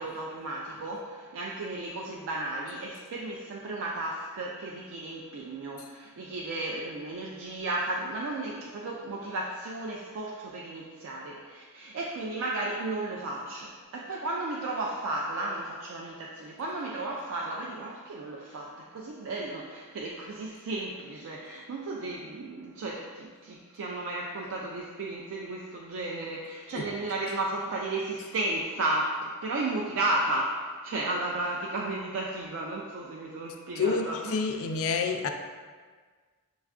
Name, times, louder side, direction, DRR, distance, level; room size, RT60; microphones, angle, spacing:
voice 1, 0.0-34.9 35.2-35.3, right 2 dB, 60° right, -2 dB, 0.3 m, -34 dB
voice 2, 33.8-35.3, left 4 dB, 65° left, 5 dB, 0.3 m, -28 dB
6.2 x 2.3 x 2.4 m, 1.5 s
head